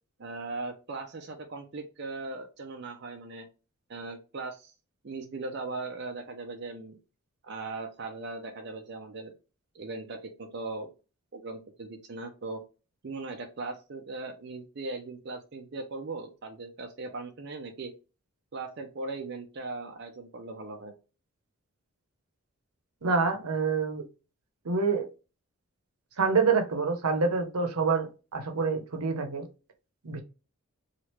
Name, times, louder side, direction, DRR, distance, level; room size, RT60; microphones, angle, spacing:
voice 1, 0.2-3.5 3.9-4.7 5.0-7.0 7.4-9.3 9.7-10.9 11.3-12.6 13.0-17.9 18.5-20.9, right 3 dB, 50° right, 0.5 m, -39 dB
voice 2, 23.0-24.0 24.6-25.1 26.2-28.1 28.3-29.4 30.0-30.2, right 4 dB, 90° right, 0.7 m, -26 dB
3.1 x 2.4 x 3.0 m
head